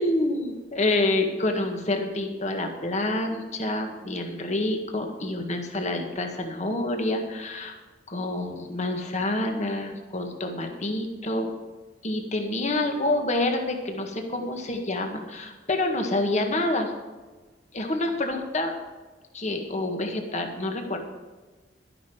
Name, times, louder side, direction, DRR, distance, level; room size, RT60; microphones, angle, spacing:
voice 1, 0.0-7.8 8.1-11.5 12.0-16.9 17.7-18.7 19.3-21.0, left 2 dB, 40° left, 4 dB, 1.8 m, -27 dB
12.0 x 11.0 x 5.0 m, 1.3 s
head